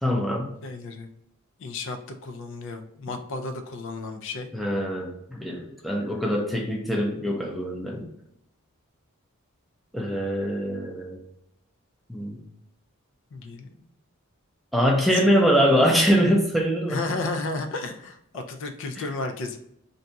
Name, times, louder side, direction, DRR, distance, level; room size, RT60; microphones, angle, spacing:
voice 1, 0.0-0.6 4.5-8.1 9.9-11.2 12.1-12.4 14.7-17.0, equal, ahead, -1 dB, 0.5 m, -23 dB
voice 2, 0.6-1.1 1.6-4.5 13.3-13.9 16.9-19.6, left 3 dB, 60° left, 6 dB, 0.4 m, -33 dB
2.6 x 2.3 x 3.8 m, 0.77 s
head